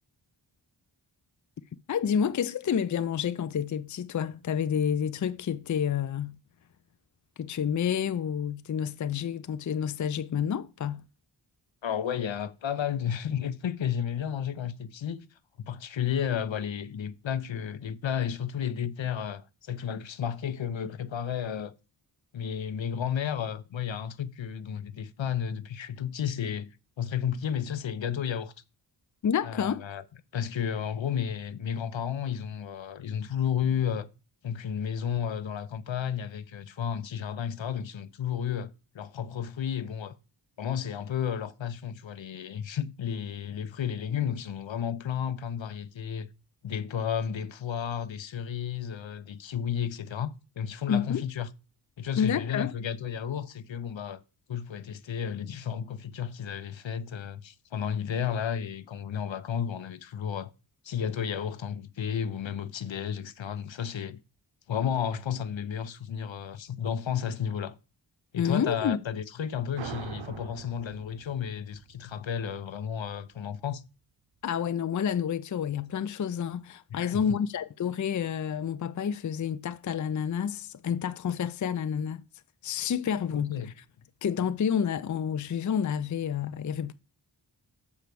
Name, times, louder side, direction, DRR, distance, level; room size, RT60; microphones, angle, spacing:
voice 1, 1.9-6.4 7.4-11.0 29.2-29.8 50.9-51.2 52.2-52.7 68.4-69.0 74.4-82.2 82.6-83.6 84.2-86.9, left 8 dB, 40° left, 0.5 m, -29 dB
voice 2, 11.8-15.2 15.7-21.7 22.3-26.7 27.0-28.5 29.4-30.0 30.3-34.1 34.4-40.2 40.6-46.3 46.6-51.5 52.0-54.2 54.5-60.5 60.8-64.2 64.7-67.7 68.3-73.8 76.9-77.2 83.3-83.7, left 8 dB, 75° left, 0.8 m, -32 dB
sound 1, 69.8-73.1, right 8 dB, 75° right, 0.8 m, -43 dB
7.1 x 4.6 x 6.7 m
wide cardioid pair, 95°, 46 cm